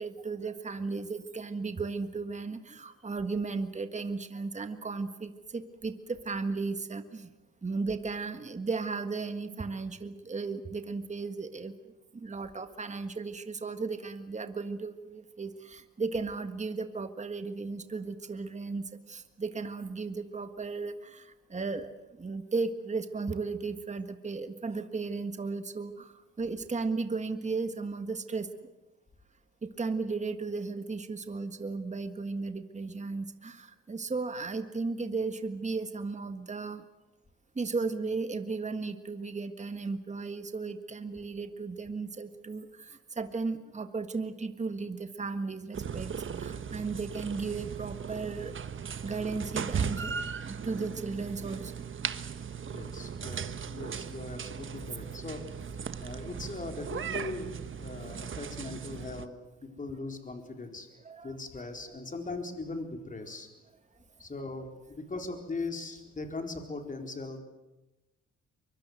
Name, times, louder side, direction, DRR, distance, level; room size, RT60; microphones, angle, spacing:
voice 1, 0.0-7.3 7.6-11.7 12.1-21.9 22.2-26.1 26.4-28.5 29.6-36.8 37.5-46.1 46.3-48.5 49.0-51.7 61.0-61.4, right 4 dB, 25° right, 9 dB, 1.6 m, -35 dB
sound 1, 45.7-59.2, right 7 dB, 40° right, 1.4 m, -37 dB
voice 2, 52.7-55.4 56.0-60.9 61.2-63.5 64.2-64.7 65.0-67.4, left 3 dB, 25° left, 4 dB, 4.4 m, -39 dB
23.5 x 23.5 x 8.1 m, 1.0 s
cardioid pair, 90°, 30 cm